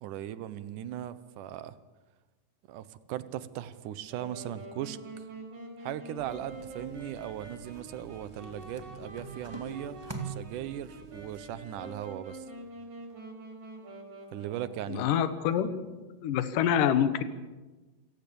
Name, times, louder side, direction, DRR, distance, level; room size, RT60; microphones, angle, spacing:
voice 1, 0.0-1.8 2.7-5.3 5.8-12.5 14.3-15.0, right 12 dB, 70° right, 13 dB, 2.1 m, -38 dB
Wind instrument woodwind instrument, 4.1-15.0, right 1 dB, 45° right, 5.8 m, -46 dB
sound 1, 6.2-12.7, right 4 dB, 20° right, 0.6 m, -46 dB
voice 2, 14.9-15.9 16.2-17.2, left 9 dB, 65° left, 10 dB, 2.6 m, -26 dB
28.0 x 16.5 x 7.1 m, 1.2 s
omnidirectional pair, 4.7 m